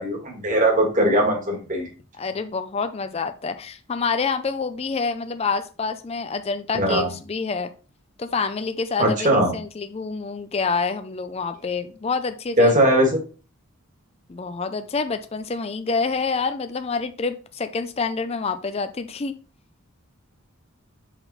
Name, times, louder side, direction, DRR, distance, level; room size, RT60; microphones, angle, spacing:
voice 1, 0.0-1.9 6.7-7.1 9.0-9.5 12.6-13.1, right 1 dB, 35° right, 1 dB, 1.8 m, -19 dB
voice 2, 2.2-7.7 8.2-12.7 14.3-19.3, left 4 dB, 30° left, 9 dB, 0.4 m, -27 dB
5.9 x 4.2 x 4.0 m, 0.36 s
head